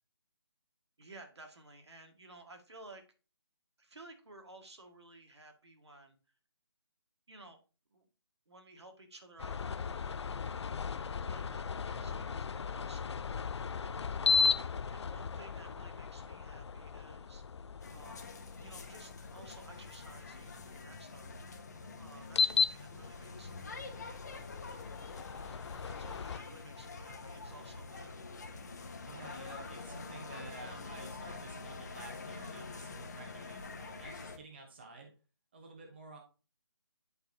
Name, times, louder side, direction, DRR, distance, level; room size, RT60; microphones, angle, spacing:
voice 1, 1.0-3.0 3.8-6.2 7.3-7.6 7.9-8.1 8.5-13.5 13.8-14.2 14.8-17.4 17.9-18.3 18.6-23.8 25.9-28.1, right 2 dB, 75° right, 4 dB, 2.0 m, -55 dB
sound 1, 9.4-20.8 22.2-26.4, left 5 dB, 80° left, 0.4 m, -36 dB
sound 2, 17.8-34.4, left 4 dB, 40° left, 0.9 m, -46 dB
voice 2, 29.1-35.1 35.5-36.2, right 3 dB, 25° right, 2 dB, 0.8 m, -51 dB
10.5 x 4.4 x 2.7 m, 0.34 s
hypercardioid pair, 175°, 14 cm